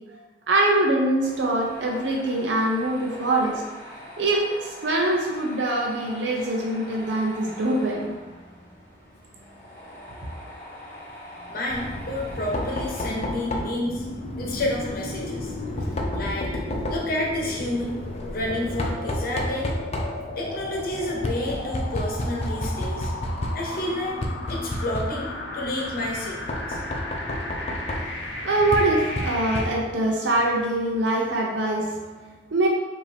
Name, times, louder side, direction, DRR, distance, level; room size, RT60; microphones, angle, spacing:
voice 1, 0.5-3.6 4.2-8.2 28.1-32.7, right 1 dB, 85° right, -1 dB, 0.6 m, -24 dB
Tools, 1.2-13.2, left 1 dB, 15° left, 1.3 m, -43 dB
voice 2, 11.5-14.0 14.4-15.5 16.1-16.6 16.9-18.0 18.3-19.8 20.4-23.1 23.5-24.2 24.5-26.8, left 1 dB, 55° left, -2 dB, 0.9 m, -30 dB
Knock, 11.7-30.1, left 1 dB, 35° left, 0.5 m, -32 dB
sound 1, 13.1-29.6, left 2 dB, 85° left, 0.6 m, -36 dB
4.9 x 2.7 x 3.3 m, 1.2 s
head